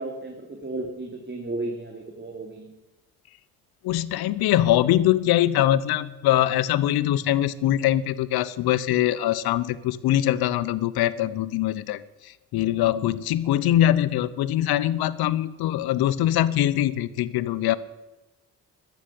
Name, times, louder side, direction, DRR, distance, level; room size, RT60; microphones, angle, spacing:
voice 1, 0.0-2.7 12.8-12.9, right 2 dB, 30° right, 1 dB, 2.9 m, -34 dB
voice 2, 3.8-17.8, left 13 dB, 85° left, 18 dB, 0.9 m, -23 dB
13.5 x 12.5 x 8.5 m, 1.1 s
supercardioid pair, 60°, 36 cm